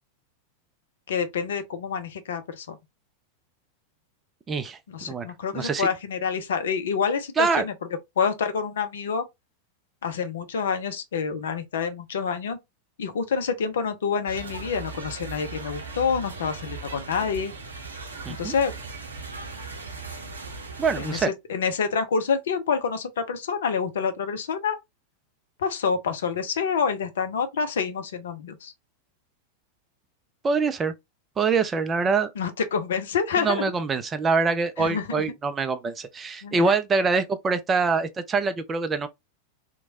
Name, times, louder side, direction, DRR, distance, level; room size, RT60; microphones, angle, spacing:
voice 1, 1.1-2.8 4.9-7.7 8.2-9.2 10.0-12.6 13.0-17.5 18.3-18.7 21.0-24.8 25.6-28.7 32.4-33.6 34.8-35.2 36.4-36.7, left 6 dB, 60° left, 0.5 m, -27 dB
voice 2, 4.5-4.8 5.1-5.3 5.5-5.9 7.4-7.7 18.3-18.5 20.8-21.3 30.4-30.9 31.4-32.3 33.4-39.1, right 4 dB, 20° right, 0.4 m, -24 dB
sound 1, 14.3-21.2, right 4 dB, 75° right, 0.7 m, -38 dB
2.9 x 2.2 x 2.7 m
figure-of-eight pair, 90°, 0 cm